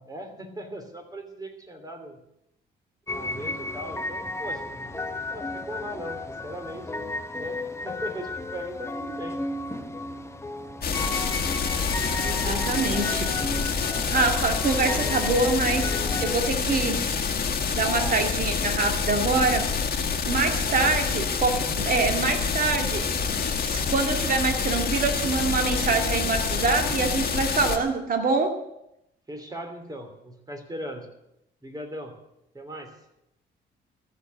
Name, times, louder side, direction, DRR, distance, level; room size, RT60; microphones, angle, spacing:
voice 1, 0.0-2.2 3.1-7.6 7.8-9.4 17.8-18.3 18.6-18.8 20.7-21.0 29.3-31.1 31.6-32.1 32.5-32.9, right 1 dB, 20° right, 5 dB, 3.0 m, -39 dB
sound 1, 3.1-16.5, left 2 dB, 15° left, 1.0 m, -34 dB
sound 2, 10.8-27.8, left 5 dB, 50° left, 1.7 m, -27 dB
voice 2, 12.2-13.3 14.1-15.9 16.2-17.1 17.7-19.7 20.3-23.3 23.6-28.6, right 4 dB, 45° right, 4 dB, 2.2 m, -25 dB
14.0 x 6.8 x 9.4 m, 0.84 s
cardioid pair, 90°, 20 cm